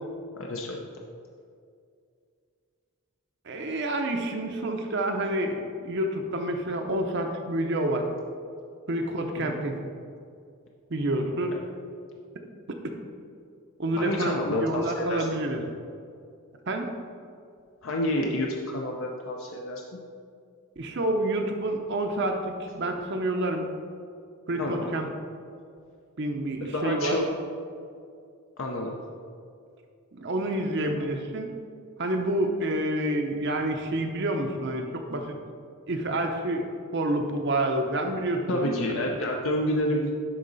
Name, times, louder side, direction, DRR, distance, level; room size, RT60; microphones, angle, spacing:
voice 1, 0.4-0.8 9.4-9.6 11.5-11.6 13.9-15.3 17.8-19.8 24.6-25.0 26.7-27.2 28.6-29.0 38.5-40.1, left 1 dB, 60° left, 0 dB, 0.6 m, -29 dB
voice 2, 3.5-8.1 8.9-9.8 10.9-11.5 13.8-15.6 16.7-16.9 20.8-23.7 24.5-25.1 26.2-27.2 30.1-31.5 32.0-35.4 35.9-36.6 36.9-38.8, right 1 dB, 50° right, 4 dB, 0.7 m, -28 dB
11.0 x 4.0 x 4.0 m, 2.3 s
head